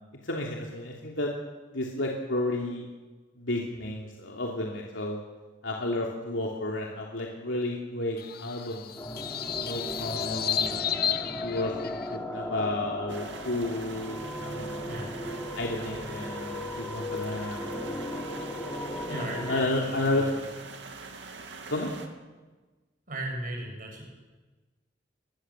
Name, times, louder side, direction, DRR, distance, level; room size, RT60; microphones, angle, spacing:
voice 1, 0.2-1.3 1.7-2.8 3.4-5.2 5.6-8.9 9.6-10.8 11.4-11.9 12.3-15.1 15.6-18.0 19.1-20.2 21.7-21.9, left 2 dB, 75° left, -1 dB, 3.0 m, -32 dB
sound 1, 8.2-12.2, left 9 dB, 50° left, 0.9 m, -32 dB
sound 2, 9.0-19.7, left 1 dB, 10° left, 3.0 m, -37 dB
sound 3, 13.1-22.1, right 4 dB, 65° right, 2.7 m, -43 dB
voice 2, 19.1-20.3 23.1-24.1, right 1 dB, 45° right, 1 dB, 7.4 m, -37 dB
24.0 x 22.0 x 7.5 m, 1.3 s
head